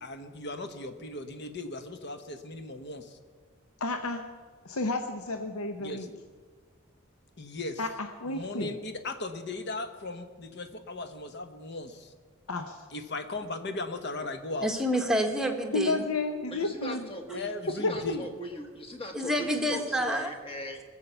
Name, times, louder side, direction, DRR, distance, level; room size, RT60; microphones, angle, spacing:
voice 1, 0.0-3.2 5.8-6.2 7.4-7.9 8.3-12.1 12.9-14.7 17.3-18.3, left 2 dB, 55° left, 8 dB, 1.0 m, -37 dB
voice 2, 3.8-4.2 4.6-6.1 7.8-8.7 12.5-12.8 15.7-17.1, left 3 dB, 85° left, 6 dB, 0.8 m, -31 dB
voice 3, 14.6-16.0 19.1-20.3, equal, 5° right, 3 dB, 1.0 m, -28 dB
voice 4, 16.5-20.9, left 1 dB, 25° left, 3 dB, 1.3 m, -40 dB
20.0 x 7.3 x 6.8 m, 1.5 s
head